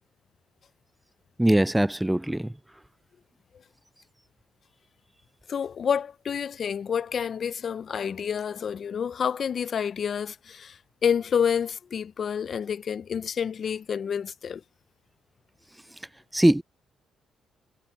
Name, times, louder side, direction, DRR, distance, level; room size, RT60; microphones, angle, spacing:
voice 1, 1.4-2.5 16.3-16.6, right 1 dB, 5° right, 0.3 m, -21 dB
voice 2, 5.5-14.6, left 7 dB, 50° left, 0.6 m, -29 dB
cardioid pair, 90°, 0 cm